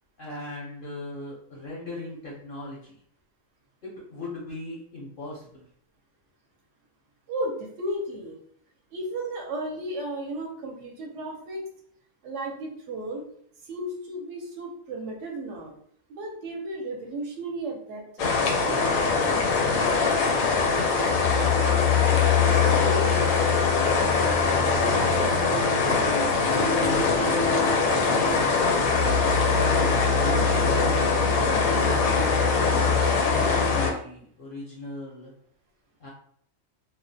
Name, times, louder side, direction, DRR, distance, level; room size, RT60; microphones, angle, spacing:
voice 1, 0.2-3.0 3.8-5.6 22.8-23.4 24.4-27.2 28.0-28.9 30.1-31.1 31.6-35.3 36.0-36.1, left 1 dB, 55° left, -5 dB, 0.6 m, -38 dB
voice 2, 7.3-8.4 8.9-11.6 12.2-13.2 13.6-15.7 16.1-19.0, right 1 dB, 70° right, 0 dB, 0.9 m, -34 dB
sound 1, 18.2-33.9, left 4 dB, 80° left, 1.0 m, -22 dB
2.4 x 2.1 x 2.6 m, 0.62 s
omnidirectional pair, 1.4 m